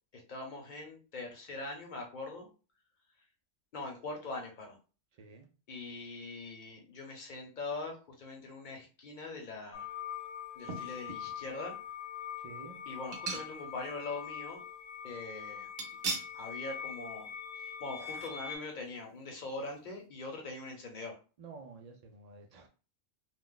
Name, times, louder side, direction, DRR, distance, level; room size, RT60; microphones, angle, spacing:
voice 1, 0.1-2.5 3.7-4.8 5.7-9.9 10.5-11.8 12.9-14.6 15.0-15.7 16.3-21.2, left 3 dB, 45° left, 0.8 m, -42 dB
sound 1, 9.7-18.6, left 8 dB, 80° left, 1.1 m, -43 dB
sound 2, 10.7-11.3 11.8-11.9 13.1-13.9 14.2-14.3 15.8-16.4 16.8-17.0 17.3-17.4, right 4 dB, 60° right, 0.8 m, -39 dB
voice 2, 12.4-12.8 21.4-22.7, right 4 dB, 75° right, 0.3 m, -50 dB
2.4 x 2.1 x 3.7 m
omnidirectional pair, 1.2 m